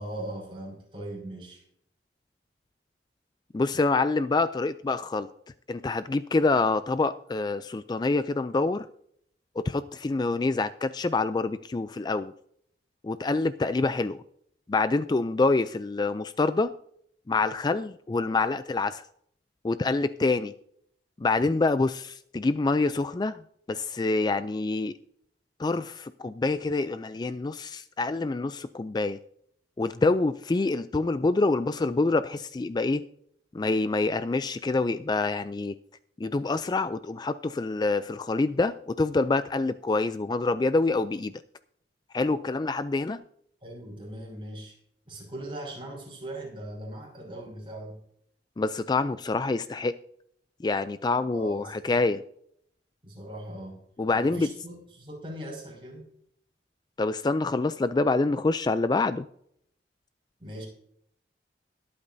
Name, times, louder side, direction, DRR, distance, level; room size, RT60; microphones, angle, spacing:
voice 1, 0.0-1.6 43.6-44.8 45.1-48.0 51.3-51.9 53.0-53.8 54.1-56.1 60.4-60.7, right 1 dB, 30° right, -1 dB, 5.6 m, -39 dB
voice 2, 3.5-5.3 5.7-8.9 9.6-12.3 13.0-14.2 14.7-16.7 17.3-19.0 19.6-20.5 21.2-23.4 23.7-24.9 25.6-29.2 29.8-33.0 33.5-35.7 36.2-41.3 42.1-43.2 48.6-50.0 50.6-52.2 54.0-54.5 57.0-59.2, left 3 dB, 25° left, 13 dB, 0.3 m, -26 dB
22.0 x 8.6 x 2.7 m, 0.69 s
head